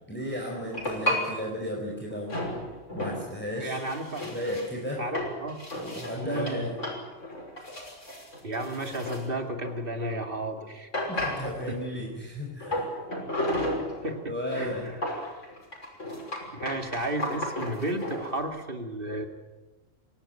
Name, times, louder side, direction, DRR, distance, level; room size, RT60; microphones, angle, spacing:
voice 1, 0.1-2.5 2.9-3.8 4.3-5.1 5.8-6.8 11.1-12.9 14.3-14.9, equal, 10° left, -1 dB, 4.3 m, -34 dB
sound 1, 0.7-1.3 2.3-3.3 3.6-10.2 10.6-10.7 10.9-11.8 12.6-14.2 14.5-18.3, left 1 dB, 65° left, 6.4 m, -33 dB
voice 2, 3.6-4.3 5.0-5.6 6.2-6.7 8.4-10.9 11.7-11.8 14.0-15.0 16.5-19.3, right 1 dB, 45° right, 5 dB, 2.6 m, -33 dB
26.0 x 17.0 x 9.1 m, 1.2 s
omnidirectional pair, 1.3 m